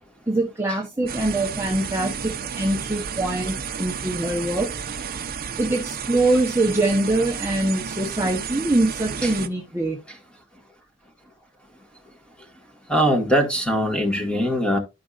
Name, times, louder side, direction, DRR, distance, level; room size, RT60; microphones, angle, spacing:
voice 1, 0.3-4.7 5.6-10.0, right 2 dB, 10° right, 1.0 m, -23 dB
sound 1, 1.1-9.5, right 6 dB, 40° right, 0.8 m, -32 dB
voice 2, 12.9-14.8, equal, 5° left, 1.7 m, -21 dB
12.5 x 5.1 x 2.5 m
head